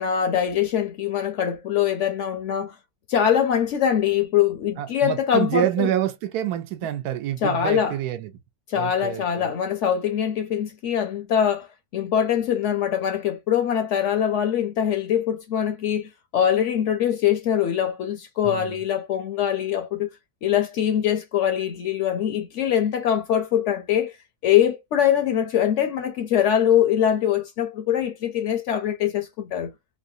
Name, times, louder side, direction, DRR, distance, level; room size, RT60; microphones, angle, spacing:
voice 1, 0.0-2.8 3.1-5.9 7.4-8.0 8.7-11.7 11.9-20.1 20.4-24.2 24.4-29.7, left 9 dB, 65° left, 0.7 m, -23 dB
voice 2, 4.8-8.3 8.7-9.4 18.4-18.8, right 12 dB, 80° right, 1.2 m, -27 dB
3.2 x 2.6 x 2.6 m
omnidirectional pair, 1.6 m